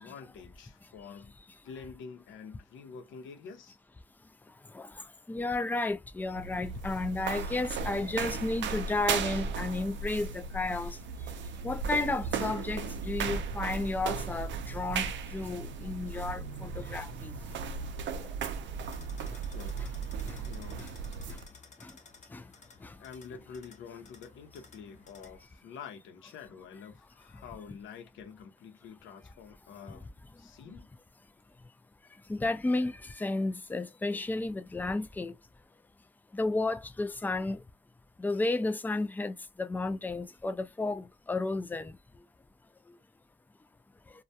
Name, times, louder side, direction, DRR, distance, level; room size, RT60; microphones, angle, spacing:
voice 1, 0.0-1.3 1.6-3.7 19.5-19.8 20.4-20.8 23.0-30.1 30.4-30.9, left 6 dB, 75° left, 0.8 m, -47 dB
voice 2, 5.3-11.0 11.6-17.3 18.2-18.3 19.3-19.4 19.8-19.9 20.3-20.4 20.8-20.9 21.3-21.4 21.8-21.9 22.3-22.4 22.8-22.9 32.3-35.3 36.3-37.6 38.2-41.9, left 2 dB, 10° left, 0.3 m, -32 dB
sound 1, 6.2-21.5, right 5 dB, 70° right, 0.5 m, -36 dB
sound 2, 18.8-25.5, left 4 dB, 35° left, 0.8 m, -55 dB
2.3 x 2.2 x 2.7 m
cardioid pair, 90°, 20 cm